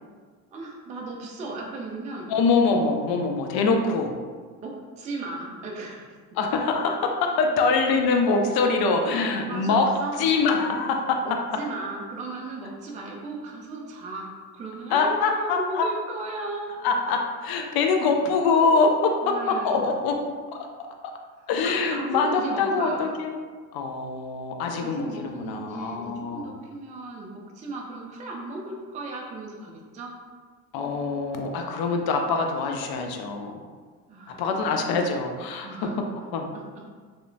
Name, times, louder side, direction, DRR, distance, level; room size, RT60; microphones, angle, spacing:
voice 1, 0.5-2.3 4.6-6.1 9.4-10.2 11.2-16.9 19.2-19.9 21.6-23.0 24.8-30.1 34.1-34.4 35.6-36.9, right 2 dB, 20° right, -1 dB, 0.3 m, -36 dB
voice 2, 2.3-4.1 6.4-9.9 10.2-11.2 14.9-15.9 16.8-20.2 20.5-20.9 21.5-23.3 23.7-26.6 30.7-33.5 34.4-35.7 36.3-36.5, left 4 dB, 50° left, 3 dB, 0.5 m, -24 dB
2.8 x 2.0 x 2.6 m, 1.5 s
hypercardioid pair, 75°, 47 cm